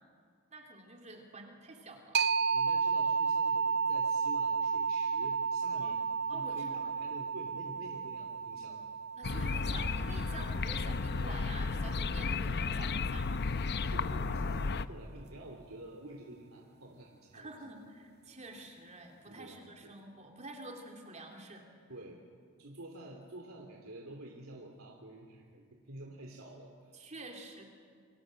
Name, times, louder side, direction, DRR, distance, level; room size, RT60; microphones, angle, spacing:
voice 1, 0.5-2.2 5.7-6.0 6.3-7.0 9.1-13.4 17.3-21.7 26.9-27.6, right 2 dB, 35° right, 1 dB, 3.1 m, -48 dB
sound 1, 2.1-11.5, right 5 dB, 50° right, 0.6 m, -33 dB
voice 2, 2.5-8.8 13.8-17.6 19.3-19.9 21.9-22.2 22.6-26.9, right 1 dB, 75° right, 1 dB, 3.1 m, -49 dB
sound 2, 9.2-14.9, left 4 dB, 50° left, 0.7 m, -33 dB
29.5 x 25.5 x 7.8 m, 2.2 s
head